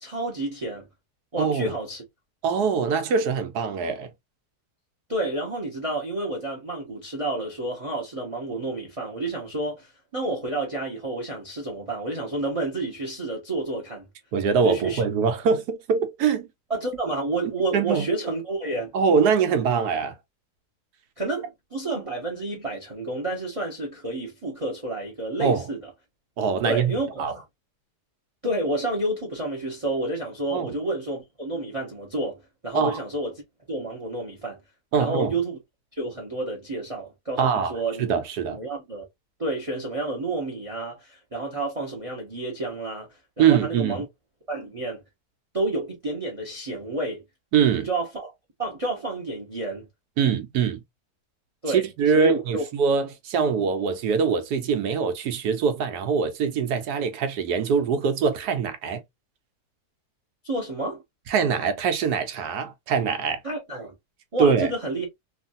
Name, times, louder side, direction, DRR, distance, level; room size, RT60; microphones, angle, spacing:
voice 1, 0.0-0.9 1.3-2.0 5.1-14.1 14.6-15.0 16.7-18.9 21.2-25.8 26.6-27.4 28.4-33.3 33.7-34.6 35.0-35.6 35.9-38.1 38.5-39.0 39.4-44.0 44.5-45.0 45.5-47.2 47.8-48.3 48.6-49.9 51.6-51.8 52.1-52.6 60.4-61.0 63.4-63.9 64.3-65.1, right 2 dB, 30° right, 0.7 m, -30 dB
voice 2, 1.3-1.7 2.4-4.1 14.3-16.5 17.7-18.1 18.9-20.1 25.4-25.6 26.4-27.3 30.5-30.7 32.7-33.0 34.9-35.3 37.4-37.7 38.0-38.6 43.4-44.0 47.5-47.9 50.2-50.8 51.7-59.0 61.3-63.4 64.4-64.7, right 6 dB, 75° right, 1.2 m, -23 dB
3.1 x 2.5 x 2.5 m
omnidirectional pair, 1.8 m